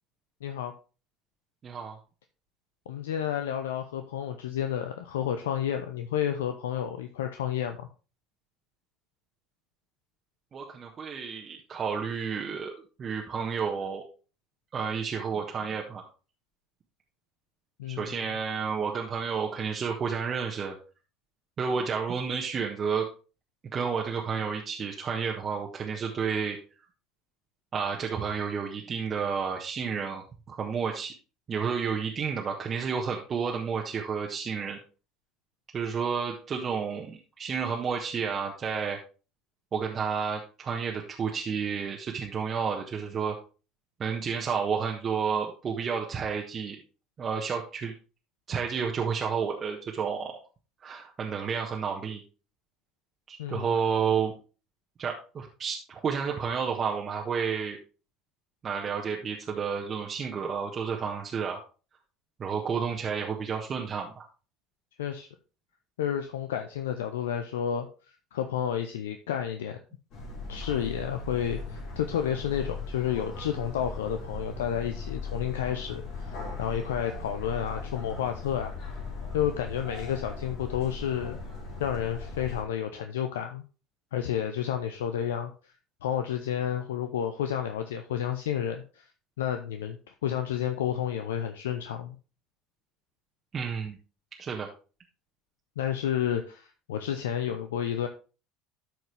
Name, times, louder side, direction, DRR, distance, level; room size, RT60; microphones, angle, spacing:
voice 1, 0.4-0.7 2.9-7.9 17.8-18.2 53.4-53.7 65.0-65.3 66.0-67.9 68.3-69.8 70.5-78.7 79.3-81.4 81.8-83.6 84.1-85.7 86.0-89.1 89.4-92.2 95.8-98.1, left 9 dB, 80° left, 7 dB, 0.6 m, -31 dB
voice 2, 1.6-2.0 10.5-12.7 13.0-14.0 14.7-16.0 17.9-20.8 21.6-23.1 23.7-26.6 27.7-31.1 31.5-34.8 35.7-39.0 39.7-43.4 44.0-46.8 47.2-47.9 48.5-50.3 50.8-52.2 53.3-54.3 55.0-57.8 58.6-61.6 62.4-64.2 93.5-94.0 94.4-94.7, right 6 dB, 35° right, 0 dB, 1.4 m, -31 dB
sound 1, 70.1-82.6, left 3 dB, 60° left, 3.2 m, -38 dB
13.0 x 4.6 x 3.3 m, 0.35 s
hypercardioid pair, 70°, 0 cm